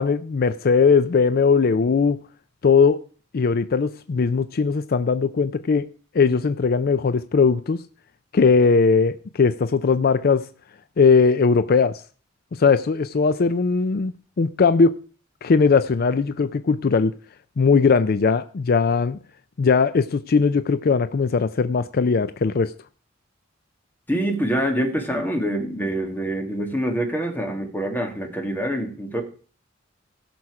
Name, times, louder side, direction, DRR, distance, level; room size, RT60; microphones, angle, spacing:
voice 1, 0.0-2.2 2.6-3.0 3.3-5.9 6.1-7.8 8.3-10.5 11.0-12.0 12.5-15.0 15.4-17.2 17.6-19.2 19.6-22.7, left 5 dB, 50° left, 0.4 m, -19 dB
voice 2, 24.1-29.2, right 1 dB, 10° left, 1.9 m, -25 dB
17.0 x 6.1 x 4.8 m
head